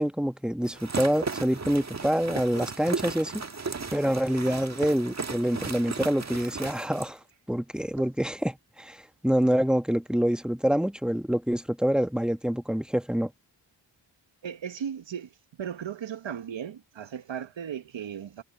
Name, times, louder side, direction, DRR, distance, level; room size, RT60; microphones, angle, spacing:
voice 1, 0.0-3.4 3.9-7.2 7.5-13.3, equal, ahead, 1.3 m, -26 dB
sound 1, 0.6-7.1, right 4 dB, 30° right, 1.6 m, -35 dB
voice 2, 14.4-18.4, right 8 dB, 60° right, 1.5 m, -36 dB
cardioid pair, 50°, 50 cm